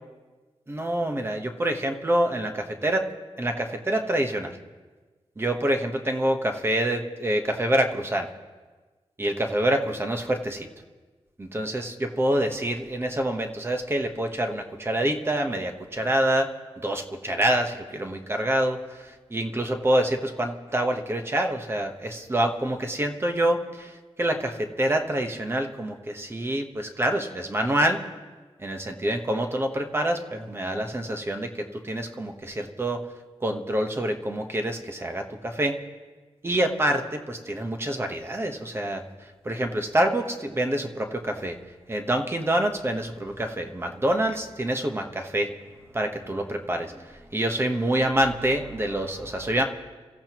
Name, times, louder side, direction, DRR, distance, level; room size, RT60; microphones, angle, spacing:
voice 1, 0.7-2.5 2.8-3.1 3.4-4.6 5.4-8.3 9.2-10.7 11.4-16.5 16.8-28.0 28.6-33.0 33.4-35.8 36.4-39.0 39.4-41.6 41.9-45.5 45.9-49.6, right 1 dB, 20° right, 4 dB, 1.2 m, -26 dB
30.0 x 15.5 x 3.0 m, 1.3 s
wide cardioid pair, 180°, 11 cm